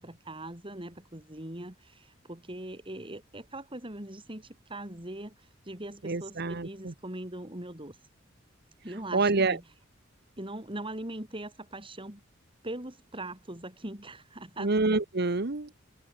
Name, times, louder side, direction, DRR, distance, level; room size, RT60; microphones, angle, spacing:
voice 1, 0.0-8.0 8.8-9.6 10.4-12.2 12.6-14.8, right 1 dB, 25° right, 5.4 m, -41 dB
voice 2, 6.0-6.9 9.1-9.6 14.6-15.8, right 3 dB, 55° right, 1.2 m, -27 dB
head